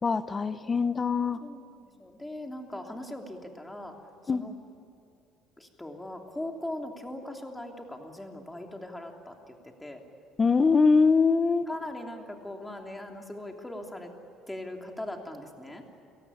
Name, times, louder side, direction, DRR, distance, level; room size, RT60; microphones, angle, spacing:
voice 1, 0.0-1.4 4.3-4.4 10.4-11.7, left 4 dB, 25° left, 13 dB, 1.0 m, -23 dB
voice 2, 1.4-3.9 4.3-4.5 5.6-10.0 11.7-14.1 14.5-15.8, left 1 dB, 10° left, 2 dB, 3.1 m, -40 dB
29.5 x 17.5 x 9.9 m, 2.5 s
cardioid pair, 120°, 0 cm